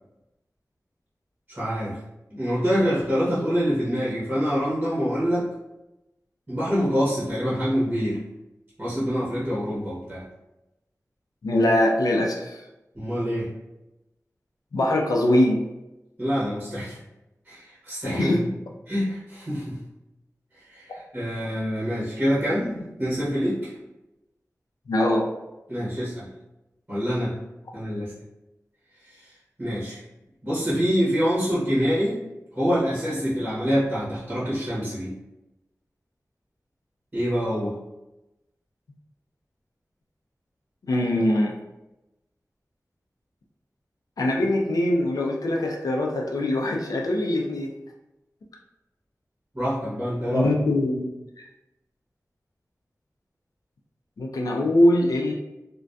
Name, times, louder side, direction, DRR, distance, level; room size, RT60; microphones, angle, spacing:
voice 1, 1.5-2.0 2.3-5.5 6.5-8.2 8.8-10.2 12.9-13.5 16.2-17.0 17.5-18.4 18.9-19.8 20.7-23.7 25.7-26.3 26.9-27.3 27.7-28.1 29.6-30.0 30.4-32.2 32.6-35.1 37.1-37.7 49.5-50.5, equal, 25° right, -10 dB, 0.9 m, -25 dB
voice 2, 11.4-12.6 14.7-15.6 18.0-18.4 24.9-25.3 40.8-41.5 44.2-47.7 50.3-51.1 51.4-51.5 54.2-55.3, left 1 dB, 90° left, 0 dB, 0.4 m, -22 dB
2.5 x 2.2 x 2.2 m, 0.96 s
wide cardioid pair, 75°, 6 cm